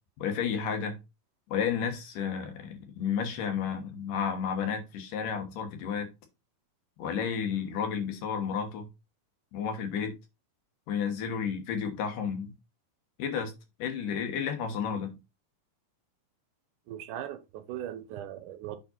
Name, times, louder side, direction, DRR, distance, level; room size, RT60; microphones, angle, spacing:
voice 1, 0.2-1.0 1.5-6.1 7.0-8.9 9.5-10.2 10.9-12.5 13.2-13.5 13.8-15.2, left 7 dB, 80° left, 2.9 m, -32 dB
voice 2, 16.9-18.8, right 11 dB, 80° right, 2.2 m, -39 dB
9.0 x 3.7 x 4.3 m
omnidirectional pair, 3.8 m